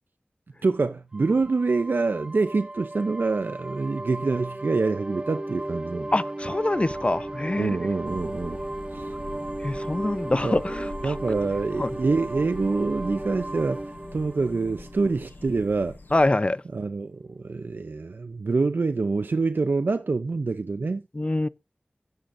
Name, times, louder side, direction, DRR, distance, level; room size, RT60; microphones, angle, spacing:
voice 1, 0.6-6.1 7.6-8.6 8.9-9.1 10.4-10.6 11.0-16.0 16.7-21.0, right 3 dB, 75° right, 0.5 m, -26 dB
sound 1, 1.1-15.6, right 1 dB, 30° right, 0.8 m, -35 dB
voice 2, 6.1-7.7 9.6-11.1 11.8-11.9 16.1-16.6 21.1-21.5, left 2 dB, 35° left, 0.6 m, -25 dB
sound 2, 8.0-16.3, left 3 dB, 70° left, 1.3 m, -43 dB
15.0 x 11.5 x 2.6 m
wide cardioid pair, 50°, 3 cm